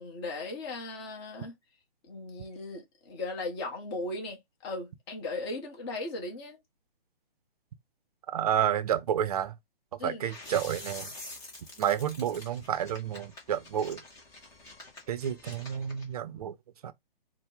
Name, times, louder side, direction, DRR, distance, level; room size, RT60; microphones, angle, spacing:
voice 1, 0.0-1.5 2.1-6.6 10.0-10.2, left 2 dB, 25° left, 1.1 m, -37 dB
voice 2, 8.3-9.5 10.0-11.1 11.8-14.0 15.1-16.5 16.8-16.9, right 9 dB, 40° right, 0.6 m, -30 dB
sound 1, 10.2-16.1, left 2 dB, 10° left, 0.6 m, -47 dB
4.2 x 2.1 x 3.6 m
figure-of-eight pair, 140°, 29 cm